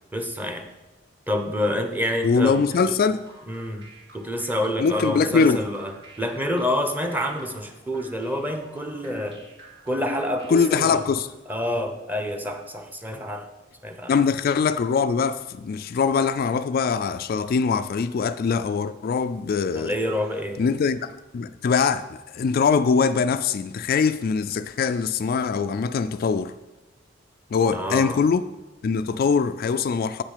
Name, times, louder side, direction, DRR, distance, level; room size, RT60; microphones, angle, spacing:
voice 1, 0.1-0.6 1.3-2.6 2.8-3.0 3.5-3.9 4.1-5.9 6.2-9.4 9.9-11.1 11.5-13.5 13.8-14.1 19.7-20.6 27.7-28.2, left 1 dB, 10° right, 0.9 m, -27 dB
sound 1, 2.1-11.3, right 2 dB, 65° right, 2.9 m, -49 dB
voice 2, 2.2-3.2 4.8-5.7 10.5-11.3 14.1-20.0 20.6-21.1 21.3-26.5 27.5-28.4 28.8-30.2, left 5 dB, 50° left, 0.3 m, -22 dB
8.2 x 6.0 x 6.6 m
head